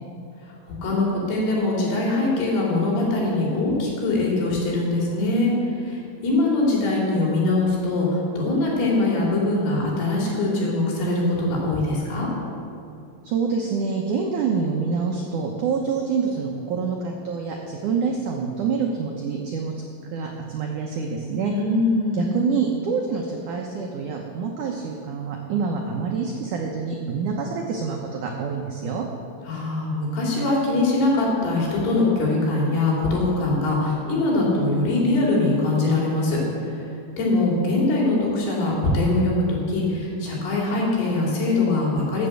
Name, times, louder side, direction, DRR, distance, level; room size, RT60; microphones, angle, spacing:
voice 1, 0.6-12.3 21.5-22.4 29.5-36.4 36.7-36.9 37.2-42.3, left 2 dB, 70° left, -4 dB, 4.9 m, -22 dB
voice 2, 13.2-21.5 22.2-29.0, right 5 dB, 80° right, 1 dB, 1.8 m, -26 dB
14.0 x 7.4 x 7.8 m, 2.6 s
omnidirectional pair, 4.9 m